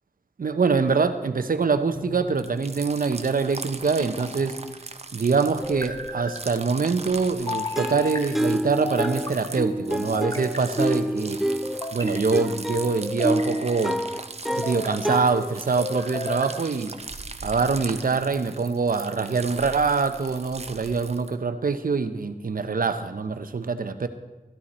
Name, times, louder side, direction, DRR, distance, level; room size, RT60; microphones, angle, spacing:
voice 1, 0.4-4.6 5.1-11.4 11.9-14.0 14.5-16.9 17.4-24.1, right 4 dB, 80° right, 10 dB, 0.8 m, -24 dB
sound 1, 2.0-2.6 4.0-4.8 5.6-6.4 7.5-8.2 8.8-9.5 10.1-11.0 11.6-12.3 13.0-13.9 14.5-15.1 15.8-16.6, left 2 dB, 25° left, 1.5 m, -34 dB
sound 2, 2.4-21.4, right 3 dB, 50° right, 0.8 m, -40 dB
sound 3, 7.8-15.8, equal, ahead, 0.4 m, -28 dB
14.0 x 12.5 x 4.3 m, 1.2 s
wide cardioid pair, 75°, 14 cm